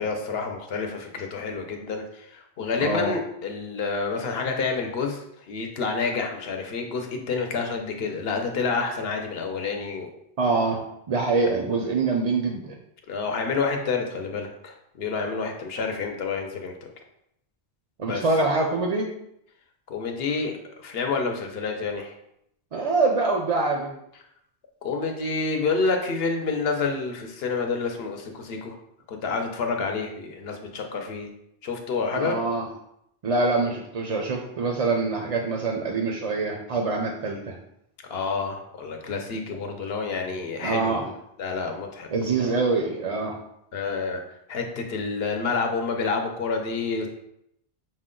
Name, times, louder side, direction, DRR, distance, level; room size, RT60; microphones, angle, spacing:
voice 1, 0.0-10.1 13.1-16.9 18.0-18.2 19.9-22.1 24.8-28.8 29.1-31.3 31.6-32.4 38.1-41.1 41.4-42.1 42.4-42.5 43.7-44.2 44.5-47.1, left 4 dB, 70° left, 3 dB, 0.9 m, -28 dB
voice 2, 2.8-3.1 10.4-10.8 11.1-12.7 18.0-19.1 22.7-23.9 32.1-32.6 33.2-37.5 40.6-41.1 42.1-43.4, right 3 dB, 50° right, 1 dB, 0.4 m, -25 dB
5.9 x 2.1 x 3.7 m, 0.77 s
omnidirectional pair, 1.1 m